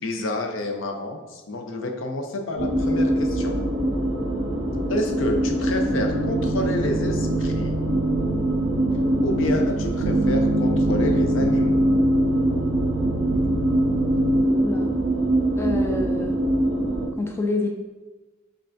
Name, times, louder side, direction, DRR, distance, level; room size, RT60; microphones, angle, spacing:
voice 1, 0.0-3.6 4.9-7.8 9.2-11.8, left 1 dB, 70° left, 3 dB, 0.6 m, -29 dB
sound 1, 2.6-17.1, right 1 dB, 40° right, 1.3 m, -23 dB
sound 2, 5.9-14.5, right 4 dB, 90° right, 0.3 m, -29 dB
voice 2, 15.6-16.3 17.2-17.7, left 2 dB, 10° left, 2 dB, 0.3 m, -27 dB
5.5 x 3.7 x 2.6 m, 1.2 s
head